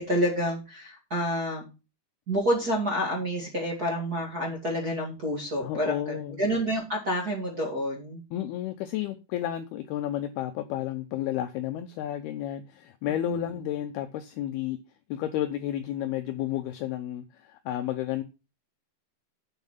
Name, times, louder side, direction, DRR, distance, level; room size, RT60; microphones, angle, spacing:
voice 1, 0.0-1.6 2.3-8.2 13.3-13.4, equal, 35° right, 1.6 m, -28 dB
voice 2, 5.6-6.4 8.3-14.8 15.1-18.2, left 12 dB, 90° left, 2.2 m, -32 dB
9.0 x 7.2 x 5.6 m
omnidirectional pair, 5.4 m